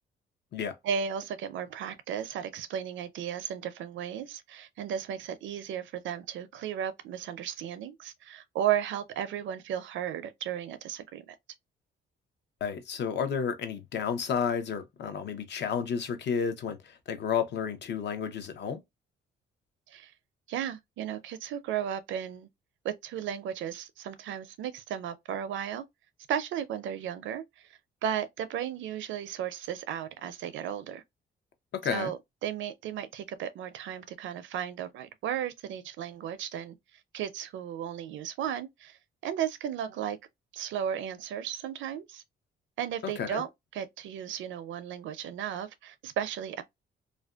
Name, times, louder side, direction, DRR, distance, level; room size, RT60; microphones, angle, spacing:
voice 1, 0.8-11.4 19.9-20.1 20.5-22.5 22.8-25.8 26.3-27.7 28.0-31.0 31.9-36.8 37.1-39.0 39.2-40.2 40.5-42.2 42.8-46.6, right 9 dB, 75° right, 0.5 m, -35 dB
voice 2, 12.6-18.8 31.7-32.1 43.2-43.4, left 7 dB, 60° left, 0.7 m, -31 dB
2.5 x 2.1 x 2.3 m
cardioid pair, 90°, 20 cm